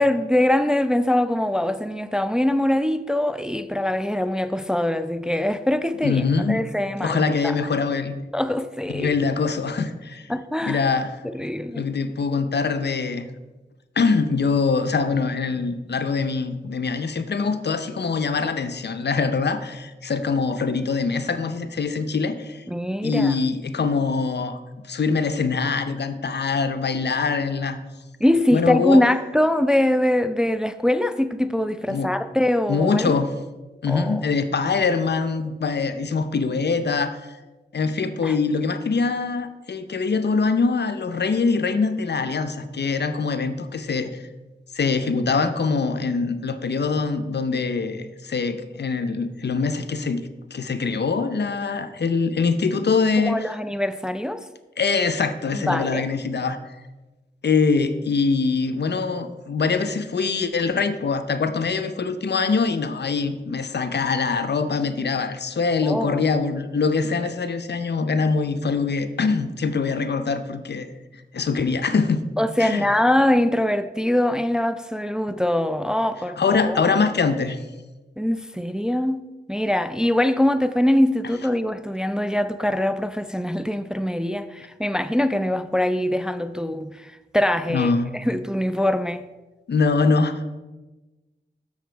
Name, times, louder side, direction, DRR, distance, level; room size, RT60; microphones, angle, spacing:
voice 1, 0.0-7.6 8.3-9.2 10.3-10.9 11.2-11.8 22.7-23.4 28.2-33.2 33.9-34.3 38.2-38.4 53.2-54.5 55.5-56.1 65.8-66.3 72.4-77.0 78.2-79.2 79.5-89.3, left 1 dB, 5° right, 0.4 m, -23 dB
voice 2, 6.0-6.6 7.0-8.1 8.9-10.3 10.7-11.1 11.8-13.3 14.0-22.6 23.0-24.6 24.9-27.8 28.5-29.0 31.9-32.1 32.7-33.3 33.8-37.2 37.7-44.2 44.7-53.4 54.8-56.6 57.4-70.9 71.3-72.2 72.6-72.8 76.4-77.6 87.7-88.1 89.7-90.4, left 4 dB, 60° left, 0.7 m, -23 dB
7.3 x 6.7 x 4.5 m
cardioid pair, 45°, 19 cm